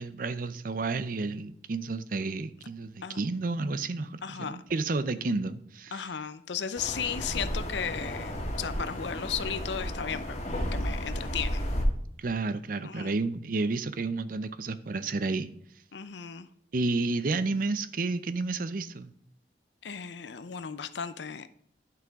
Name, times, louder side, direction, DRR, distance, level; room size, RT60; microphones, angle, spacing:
voice 1, 0.0-6.1 12.2-15.5 16.7-19.1, right 3 dB, 50° right, 13 dB, 0.5 m, -31 dB
voice 2, 4.2-4.6 5.9-10.4 10.7-11.6 12.8-13.1 15.9-16.5 19.8-21.5, left 7 dB, 80° left, 13 dB, 0.6 m, -35 dB
sound 1, 6.7-11.8, equal, 40° left, 1.8 m, -33 dB
11.0 x 6.0 x 3.6 m, 0.69 s
head